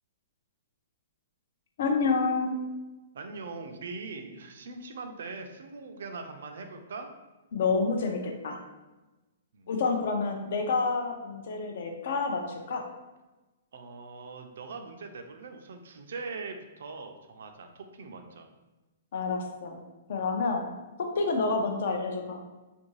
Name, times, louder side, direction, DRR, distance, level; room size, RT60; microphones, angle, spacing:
voice 1, 1.8-2.6 7.5-8.6 9.7-12.8 19.1-19.8 20.1-20.7 21.0-22.4, left 4 dB, 60° left, 3 dB, 0.5 m, -28 dB
voice 2, 3.1-7.1 9.5-9.7 13.7-18.5, right 4 dB, 70° right, 5 dB, 0.4 m, -41 dB
2.5 x 2.2 x 3.0 m, 1.1 s
hypercardioid pair, 160°, 0 cm